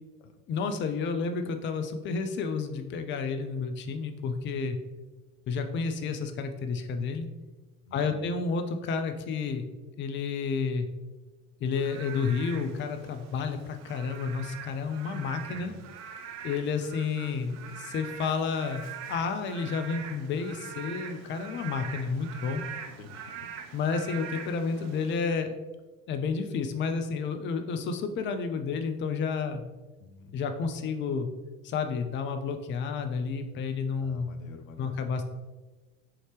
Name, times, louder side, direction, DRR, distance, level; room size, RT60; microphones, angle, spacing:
voice 1, 0.5-4.8 5.5-7.3 7.9-9.6 10.0-10.9 11.6-15.7 16.4-22.6 23.7-25.6 26.1-29.6 30.3-31.3 31.6-34.3 34.8-35.2, left 5 dB, 30° left, 7 dB, 0.5 m, -31 dB
voice 2, 7.8-8.5 15.5-15.8 23.0-23.5 30.0-30.4 34.0-35.1, left 3 dB, 75° left, 7 dB, 0.6 m, -49 dB
Frog / Rain, 11.7-25.2, right 7 dB, 45° right, 0.5 m, -43 dB
5.6 x 2.9 x 3.2 m, 1.2 s
figure-of-eight pair, 60°, 40 cm